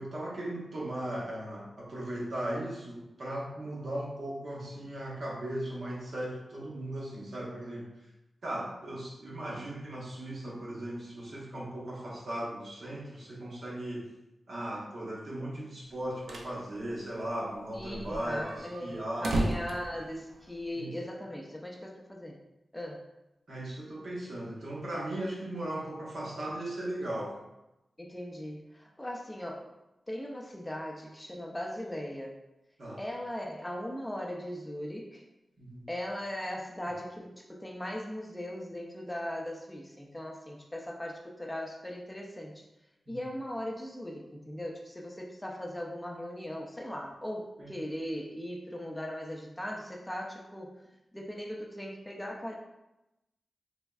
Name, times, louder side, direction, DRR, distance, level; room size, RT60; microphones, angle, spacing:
voice 1, 0.0-7.9 8.4-14.1 14.5-19.6 20.7-20.9 23.5-27.4 32.8-33.0 35.6-35.9 43.1-43.2 47.6-47.7, right 1 dB, 65° right, -4 dB, 0.9 m, -37 dB
sound 1, 15.9-16.6 16.9-17.0 17.2-17.3 17.8-20.8, right 1 dB, 90° right, 0.4 m, -34 dB
voice 2, 17.7-22.4 22.7-23.0 28.0-29.7 30.1-32.3 33.0-35.2 35.9-42.6 43.1-50.7 51.1-52.5, left 1 dB, 10° left, 0 dB, 0.4 m, -39 dB
3.3 x 3.0 x 2.3 m, 0.94 s
wide cardioid pair, 100°, 0 cm